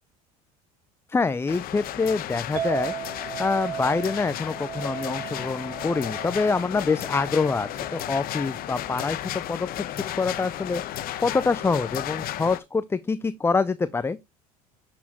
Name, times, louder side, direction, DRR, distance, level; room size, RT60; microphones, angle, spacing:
voice 1, 1.1-2.9 3.4-14.2, left 4 dB, 15° left, 0.4 m, -26 dB
sound 1, 1.5-12.6, left 12 dB, 50° left, 0.9 m, -34 dB
Chink clink, 2.6-8.8, right 10 dB, 45° right, 2.9 m, -36 dB
10.5 x 4.3 x 2.9 m
hypercardioid pair, 80°, 19 cm